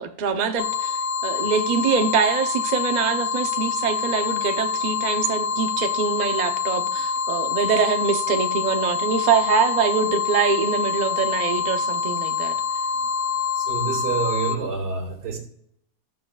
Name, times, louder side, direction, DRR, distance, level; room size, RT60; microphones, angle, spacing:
voice 1, 0.0-12.6, right 6 dB, 45° right, 0.6 m, -24 dB
sound 1, 0.6-14.6, left 6 dB, 70° left, 1.0 m, -26 dB
voice 2, 13.6-15.4, right 5 dB, 80° right, 2.6 m, -28 dB
17.5 x 6.8 x 2.4 m
omnidirectional pair, 1.7 m